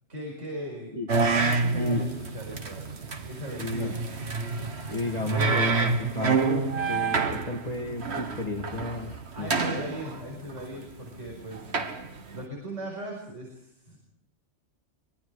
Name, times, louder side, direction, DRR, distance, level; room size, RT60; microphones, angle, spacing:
voice 1, 0.1-0.9 1.4-4.0 9.3-12.1 12.3-14.0, right 1 dB, 80° right, -1 dB, 5.6 m, -39 dB
sound 1, 1.1-12.4, right 4 dB, 60° right, 1.7 m, -28 dB
voice 2, 1.7-2.1 3.6-3.9 4.9-9.8, left 2 dB, 30° left, 1 dB, 2.1 m, -33 dB
24.0 x 23.0 x 4.9 m, 0.72 s
omnidirectional pair, 1.2 m